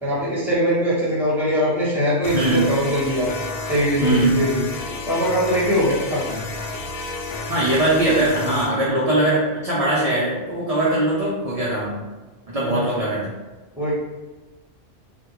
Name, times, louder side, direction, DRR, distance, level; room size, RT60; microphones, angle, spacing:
voice 1, 0.0-3.3 3.6-4.6 5.1-6.4 12.6-12.8 13.8-13.9, equal, ahead, -8 dB, 1.0 m, -22 dB
sound 1, 2.2-8.7, left 3 dB, 70° left, 0.8 m, -31 dB
voice 2, 2.3-2.7 4.0-4.4 7.5-12.0 12.5-13.3, right 1 dB, 40° right, -7 dB, 0.6 m, -21 dB
3.5 x 2.3 x 3.0 m, 1.2 s
omnidirectional pair, 1.1 m